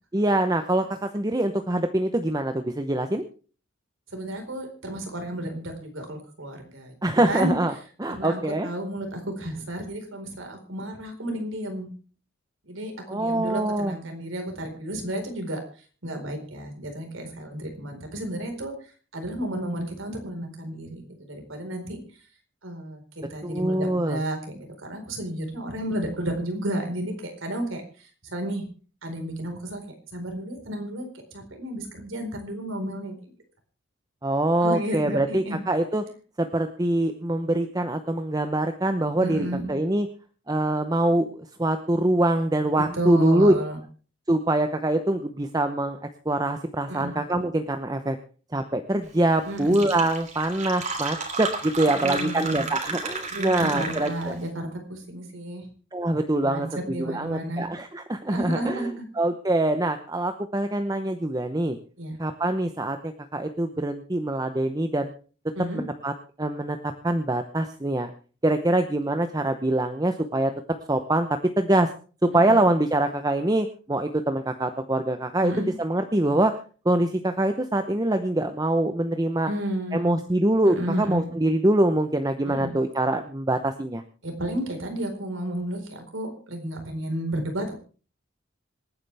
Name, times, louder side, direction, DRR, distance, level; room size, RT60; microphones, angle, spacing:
voice 1, 0.1-3.2 7.0-7.7 8.0-8.7 13.1-14.0 23.4-24.2 34.2-36.0 36.4-40.1 40.5-43.5 44.3-48.2 48.5-54.3 55.9-58.9 59.2-61.8 62.2-65.1 65.7-66.1 66.4-68.1 68.4-70.5 70.9-71.9 72.2-76.6 76.8-79.5 79.9-84.0, right 1 dB, 20° right, 7 dB, 0.8 m, -24 dB
voice 2, 4.1-7.5 8.1-11.9 12.7-15.6 16.0-18.7 19.1-22.0 22.6-23.0 23.3-28.6 29.0-29.8 30.1-31.1 31.3-33.3 34.6-35.6 39.2-39.7 42.9-43.8 46.9-47.1 49.5-49.8 52.0-52.7 53.3-55.7 56.4-57.6 58.3-59.1 62.0-62.2 65.5-65.8 72.3-72.6 75.4-75.7 79.5-80.2 80.6-81.3 82.4-82.7 84.2-87.7, right 1 dB, 90° right, 4 dB, 4.5 m, -32 dB
Fill (with liquid), 49.3-49.4 49.6-54.4, right 4 dB, 40° right, 3.2 m, -32 dB
26.0 x 9.7 x 3.5 m, 0.38 s
head